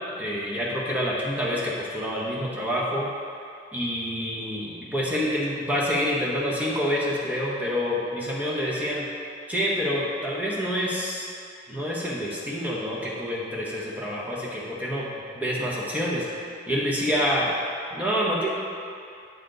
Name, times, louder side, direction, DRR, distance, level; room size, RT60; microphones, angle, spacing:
voice 1, 0.2-3.1 3.7-9.1 9.5-11.3 11.7-15.1 15.3-16.3 16.7-17.5 17.9-18.5, equal, 10° right, -6 dB, 0.9 m, -27 dB
7.8 x 4.3 x 3.8 m, 2.5 s
head